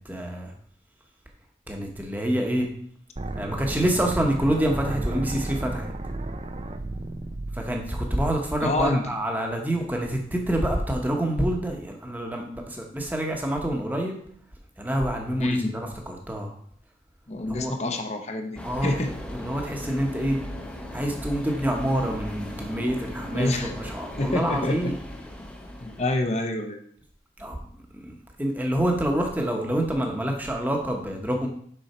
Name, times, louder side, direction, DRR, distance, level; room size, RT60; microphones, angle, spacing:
voice 1, 0.0-0.5 1.7-2.7 3.4-5.9 7.5-14.2 14.8-16.5 17.4-17.7 18.6-18.9 19.3-20.4 20.9-25.0 27.4-27.6 28.1-31.5, right 1 dB, 10° right, 2 dB, 1.0 m, -27 dB
sound 1, 3.2-9.1, right 2 dB, 35° right, 0.5 m, -34 dB
voice 2, 8.6-9.0 15.4-15.8 17.3-19.1 23.3-23.7 24.2-24.9 25.8-26.8, left 2 dB, 40° left, 5 dB, 0.8 m, -27 dB
sound 2, 18.6-26.2, left 1 dB, 5° left, 0.7 m, -37 dB
6.6 x 5.6 x 4.3 m, 0.64 s
head